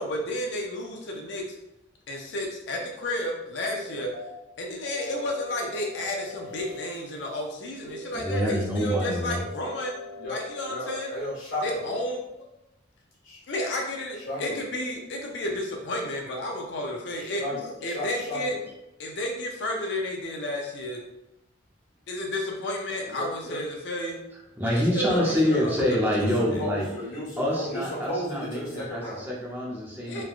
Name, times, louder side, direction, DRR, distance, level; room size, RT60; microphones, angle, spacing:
voice 1, 0.0-1.6 2.1-4.1 4.6-9.9 10.3-11.1 11.6-12.2 13.5-17.4 17.8-18.5 19.0-21.0 22.1-24.2 24.7-25.7 26.5-26.7 30.1-30.2, left 1 dB, 65° left, 0 dB, 0.4 m, -32 dB
sound 1, 3.7-4.3 4.8-6.8 7.8-8.5 8.9-10.9, left 1 dB, 35° left, 1.0 m, -42 dB
voice 2, 8.1-9.4 24.6-26.9 27.4-30.2, equal, 10° right, -5 dB, 0.6 m, -26 dB
voice 3, 10.7-11.8 13.2-13.4 14.2-14.6 17.1-18.6 23.0-23.6 25.1-25.6 26.1-29.3, left 1 dB, 85° left, -5 dB, 1.2 m, -34 dB
3.2 x 2.3 x 2.4 m, 0.92 s
head